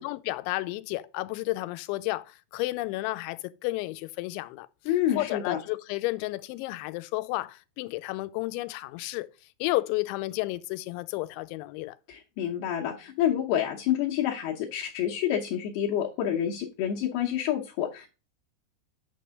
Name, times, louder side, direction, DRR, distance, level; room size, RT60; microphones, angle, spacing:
voice 1, 0.0-4.7 5.1-9.3 9.6-12.0, left 19 dB, 90° left, 2.9 m, -32 dB
voice 2, 4.9-5.6 12.1-18.1, left 10 dB, 75° left, 2.6 m, -28 dB
9.5 x 3.3 x 6.3 m
omnidirectional pair, 5.2 m